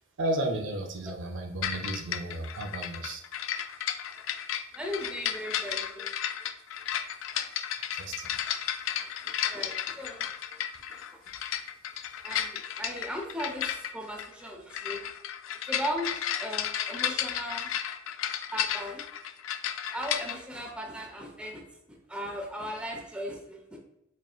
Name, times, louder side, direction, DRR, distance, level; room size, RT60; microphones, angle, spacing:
voice 1, 0.2-3.2 7.9-8.3, right 1 dB, 70° right, 5 dB, 0.6 m, -33 dB
sound 1, 1.6-20.4, left 10 dB, 80° left, 0.3 m, -33 dB
voice 2, 4.7-6.1 9.0-10.6 10.9-11.0 12.2-15.0 15.7-17.7 18.5-19.0 19.9-21.6 22.1-23.8, equal, 5° right, 1 dB, 0.6 m, -37 dB
4.3 x 3.6 x 2.3 m, 0.85 s
head